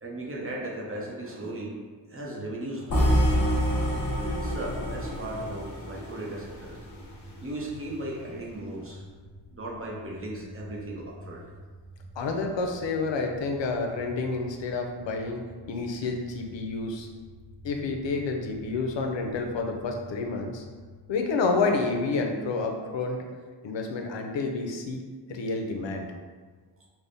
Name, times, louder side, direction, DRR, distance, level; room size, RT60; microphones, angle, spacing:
voice 1, 0.0-1.7 2.1-3.1 4.2-6.9 7.4-9.0 9.5-11.4 12.1-12.3, right 1 dB, 30° right, -3 dB, 0.6 m, -36 dB
sound 1, 2.9-7.0, equal, 45° left, 0.8 m, -27 dB
sound 2, 6.3-23.1, equal, 80° right, 1.4 m, -49 dB
voice 2, 12.2-15.4 15.7-17.1 17.6-20.6 21.1-23.2 23.6-25.0 25.3-26.1, left 3 dB, 80° left, 3 dB, 0.6 m, -29 dB
3.4 x 2.0 x 3.9 m, 1.5 s
wide cardioid pair, 90°, 44 cm